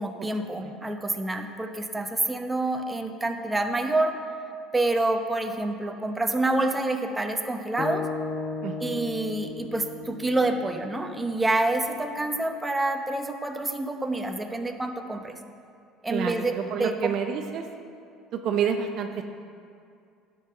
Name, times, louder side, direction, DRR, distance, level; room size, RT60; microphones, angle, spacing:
voice 1, 0.0-4.1 4.7-8.1 8.8-15.4 16.0-17.1, right 2 dB, 15° right, 5 dB, 0.9 m, -27 dB
sound 1, 7.8-12.0, left 4 dB, 50° left, 0.7 m, -36 dB
voice 2, 8.6-9.0 16.1-17.6 18.3-19.2, right 7 dB, 60° right, 6 dB, 0.6 m, -29 dB
9.9 x 5.4 x 6.5 m, 2.4 s
supercardioid pair, 80°, 0 cm